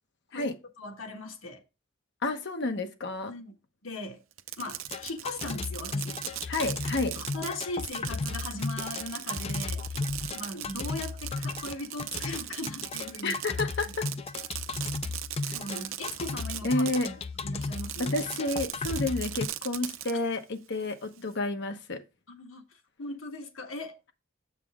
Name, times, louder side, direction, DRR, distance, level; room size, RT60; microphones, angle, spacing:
voice 1, 0.3-1.6 3.3-3.5 3.8-4.2 4.6-6.2 7.0-10.0 10.3-13.4 15.5-17.1 17.4-18.2 22.3-22.6 23.0-24.0, left 2 dB, 85° left, 1.4 m, -39 dB
voice 2, 2.2-3.3 6.5-7.1 13.2-14.1 16.6-17.1 18.0-22.0, left 2 dB, 60° left, 1.0 m, -30 dB
Fireworks, 4.3-17.2 17.6-20.1, right 13 dB, 75° right, 0.6 m, -38 dB
sound 1, 4.9-19.5, left 3 dB, 30° left, 0.4 m, -35 dB
7.5 x 5.8 x 3.6 m
head